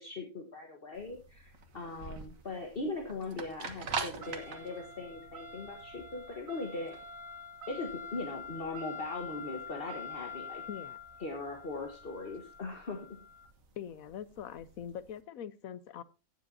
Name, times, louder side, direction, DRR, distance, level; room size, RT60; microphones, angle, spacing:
voice 1, 0.0-7.0 7.7-10.6 11.2-13.0, left 3 dB, 40° left, 3 dB, 1.5 m, -40 dB
sound 1, 1.0-15.1, right 1 dB, 70° right, 1.7 m, -44 dB
voice 2, 13.8-16.0, left 9 dB, 75° left, 16 dB, 1.2 m, -43 dB
17.0 x 7.5 x 2.7 m, 0.30 s
omnidirectional pair, 1.5 m